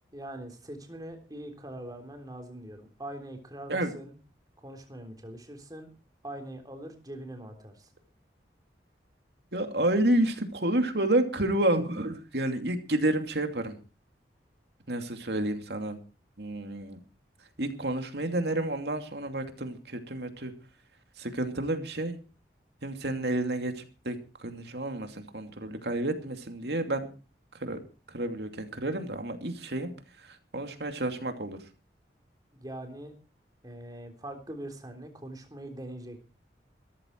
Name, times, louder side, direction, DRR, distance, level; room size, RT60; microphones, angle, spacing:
voice 1, 0.1-4.1 4.6-5.9 6.2-7.9 32.5-33.1 33.6-36.2, right 1 dB, 20° right, 5 dB, 3.5 m, -42 dB
voice 2, 9.5-13.8 14.9-16.0 16.4-17.0 17.6-20.5 21.2-22.2 22.8-27.1 27.5-27.8 28.1-29.9 30.2-31.6, right 1 dB, 65° right, 6 dB, 2.6 m, -30 dB
16.0 x 14.0 x 4.6 m, 0.35 s
head